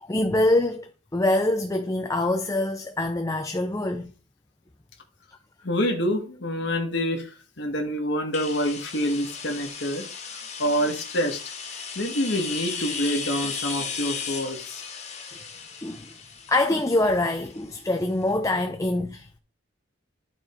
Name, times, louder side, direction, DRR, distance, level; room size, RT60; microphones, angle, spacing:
voice 1, 0.0-4.1 15.8-16.1 16.5-19.4, left 2 dB, 15° left, 0.5 m, -24 dB
voice 2, 5.6-7.3 7.6-10.0 10.6-11.4 11.9-14.8, equal, 60° left, 1.5 m, -26 dB
sound 1, 8.3-18.0, left 6 dB, 35° left, 1.6 m, -36 dB
11.5 x 4.5 x 4.4 m
head